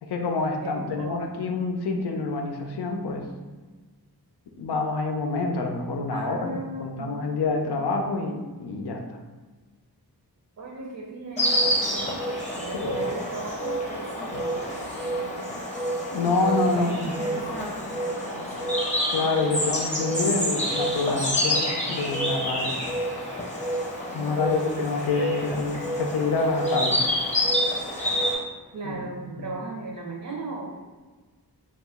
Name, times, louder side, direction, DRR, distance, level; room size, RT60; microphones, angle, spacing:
voice 1, 0.0-3.2 4.6-6.5 6.8-9.2 12.7-12.9 16.1-17.5 19.1-22.8 24.1-27.0 28.8-29.0 29.4-29.5, left 3 dB, 85° left, 3 dB, 0.5 m, -27 dB
voice 2, 0.6-1.4 6.1-7.3 10.6-12.2 12.6-15.7 16.6-18.8 24.1-24.7 28.7-30.8, right 2 dB, 55° right, -1 dB, 0.5 m, -37 dB
Insect, 11.4-28.4, equal, 20° left, 0.7 m, -28 dB
2.9 x 2.3 x 3.5 m, 1.3 s
wide cardioid pair, 85°, 38 cm